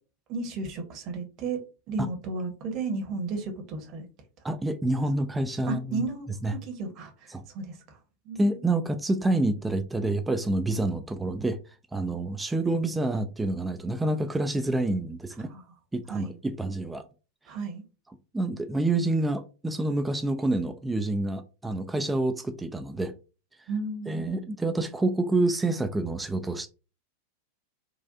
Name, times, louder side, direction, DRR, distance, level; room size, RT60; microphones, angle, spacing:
voice 1, 0.3-1.6 1.9-4.1 5.7-8.0 8.2-8.6 15.5-15.6 16.1-16.3 17.5-17.8 23.7-24.6, right 3 dB, 35° right, 0.9 m, -34 dB
voice 2, 4.4-6.1 6.4-6.5 7.3-7.4 8.4-11.6 11.9-15.5 15.9-17.0 18.3-23.1 24.1-26.7, right 2 dB, 10° right, 0.3 m, -27 dB
4.0 x 2.4 x 2.4 m
figure-of-eight pair, 90°, 0 cm